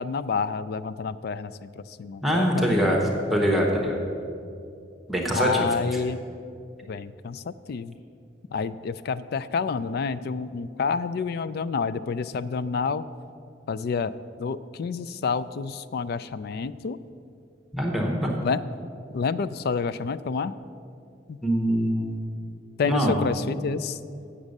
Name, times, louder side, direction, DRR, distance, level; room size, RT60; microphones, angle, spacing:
voice 1, 0.0-3.0 5.3-6.2 6.9-8.0 8.5-13.1 13.7-14.1 14.4-17.0 18.4-18.6 19.1-20.5 21.3-21.4 22.8-24.0, left 5 dB, 55° left, 15 dB, 0.3 m, -29 dB
voice 2, 2.2-3.0 3.3-4.0 5.1-5.5 17.7-18.3 21.4-22.2 22.8-23.2, equal, ahead, -1 dB, 1.0 m, -23 dB
8.3 x 7.2 x 6.5 m, 2.5 s
head